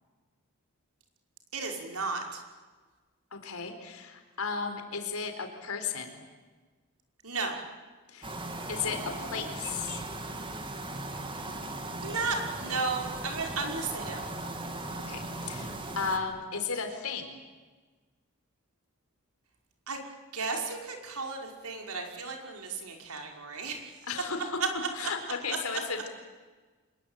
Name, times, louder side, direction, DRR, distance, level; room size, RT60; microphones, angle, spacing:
voice 1, 1.5-2.4 7.2-7.6 12.0-14.3 19.9-20.0 20.3-23.8 25.5-25.6, right 4 dB, 90° right, 2 dB, 5.5 m, -34 dB
voice 2, 3.3-6.2 8.1-8.3 8.7-10.0 15.0-17.4 24.1-24.6 24.9-26.1, left 5 dB, 80° left, 6 dB, 4.2 m, -35 dB
sound 1, 8.2-16.2, right 2 dB, 25° right, 2.7 m, -38 dB
26.5 x 22.5 x 9.1 m, 1.4 s
head